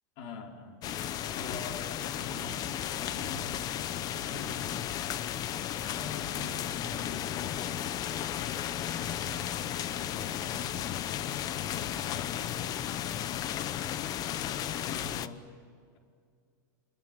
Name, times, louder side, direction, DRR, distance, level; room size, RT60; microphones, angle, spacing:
voice 1, 0.2-1.0 1.3-4.7 5.9-8.0 8.8-13.0 13.6-14.1 14.4-15.4, left 3 dB, 55° left, 1 dB, 4.6 m, -46 dB
sound 1, 0.8-15.3, left 11 dB, 40° left, 0.9 m, -34 dB
26.5 x 21.5 x 9.1 m, 2.2 s
supercardioid pair, 135°, 10 cm